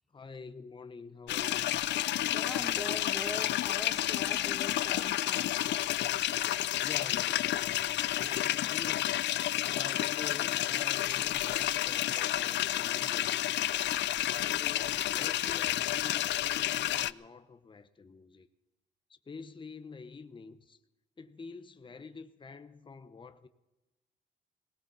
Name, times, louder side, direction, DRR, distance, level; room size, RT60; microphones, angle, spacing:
voice 1, 0.1-1.7 6.8-9.1 9.7-13.3 14.2-18.5 19.1-20.8 21.2-23.5, left 4 dB, 25° left, 0.9 m, -47 dB
sound 1, 1.3-17.1, left 13 dB, 65° left, 0.4 m, -30 dB
voice 2, 2.3-5.5, left 1 dB, ahead, 2.9 m, -42 dB
19.5 x 17.5 x 4.1 m
cardioid pair, 90°, 20 cm